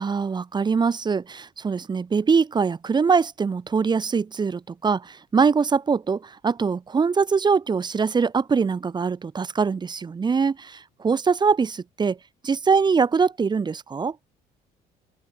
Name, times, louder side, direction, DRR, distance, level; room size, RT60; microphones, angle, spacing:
voice 1, 0.0-12.2 12.4-14.1, right 5 dB, 25° right, 0.9 m, -23 dB
open air
cardioid pair, 110°, 17 cm